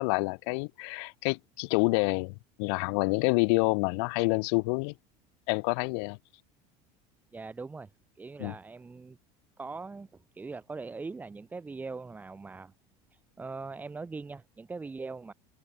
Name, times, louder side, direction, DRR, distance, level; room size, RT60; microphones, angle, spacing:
voice 1, 0.0-4.9 5.5-6.2 8.4-8.5, left 33 dB, 75° left, 5.0 m, -28 dB
voice 2, 7.3-7.9 8.2-9.2 9.6-10.1 10.3-12.7 13.1-15.3, right 4 dB, 10° right, 7.8 m, -41 dB
cardioid pair, 170°, 14 cm